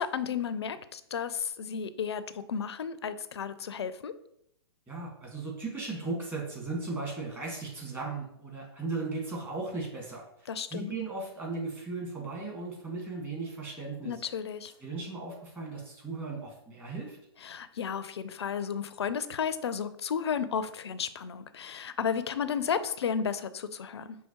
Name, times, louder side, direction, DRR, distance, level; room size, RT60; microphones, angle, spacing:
voice 1, 0.0-4.1 10.5-10.9 14.0-14.7 17.4-24.2, left 7 dB, 70° left, 14 dB, 0.4 m, -33 dB
voice 2, 4.9-14.1 14.8-17.2, right 3 dB, 15° right, -2 dB, 1.4 m, -37 dB
5.6 x 3.1 x 2.9 m, 0.75 s
figure-of-eight pair, 120°, 14 cm